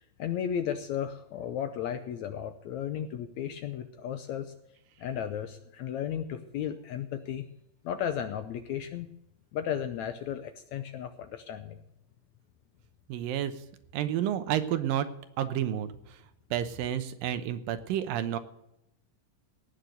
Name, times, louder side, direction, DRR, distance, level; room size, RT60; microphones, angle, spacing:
voice 1, 0.2-4.5 5.0-7.4 7.8-9.1 9.5-11.8, left 9 dB, 75° left, 9 dB, 1.8 m, -34 dB
voice 2, 13.1-13.5 13.9-15.1 15.4-16.2 16.5-18.4, right 11 dB, 80° right, 10 dB, 2.7 m, -30 dB
18.0 x 6.6 x 7.9 m, 0.83 s
omnidirectional pair, 4.0 m